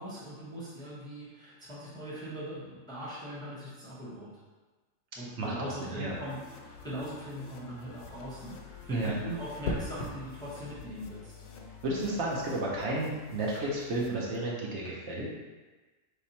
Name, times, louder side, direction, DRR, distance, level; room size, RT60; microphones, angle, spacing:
voice 1, 0.0-4.4 5.2-8.6 8.8-11.3, equal, 5° left, -8 dB, 0.7 m, -40 dB
voice 2, 5.4-6.1 8.9-9.1 11.8-15.3, right 2 dB, 65° right, -4 dB, 1.0 m, -32 dB
sound 1, 6.1-14.1, left 6 dB, 90° left, 1.0 m, -49 dB
sound 2, 9.6-10.2 12.1-12.4, left 2 dB, 65° left, 0.8 m, -35 dB
3.3 x 2.9 x 4.1 m, 1.3 s
omnidirectional pair, 1.3 m